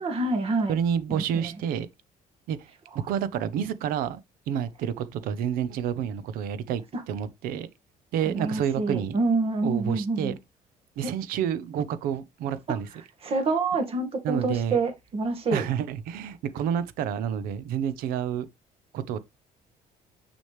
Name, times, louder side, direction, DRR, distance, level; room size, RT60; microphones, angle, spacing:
voice 1, 0.0-0.8 1.1-1.6 6.9-7.0 8.2-10.4 11.0-11.1 12.7-12.8 13.2-15.6, right 3 dB, 40° right, 1.9 m, -27 dB
voice 2, 0.7-1.9 2.5-2.7 3.1-4.2 4.5-6.8 7.1-7.7 8.1-9.2 9.6-10.3 11.0-12.9 14.2-14.8 15.5-18.5 18.9-19.2, right 9 dB, 80° right, 0.9 m, -29 dB
6.4 x 6.2 x 3.3 m
cardioid pair, 135°, 15 cm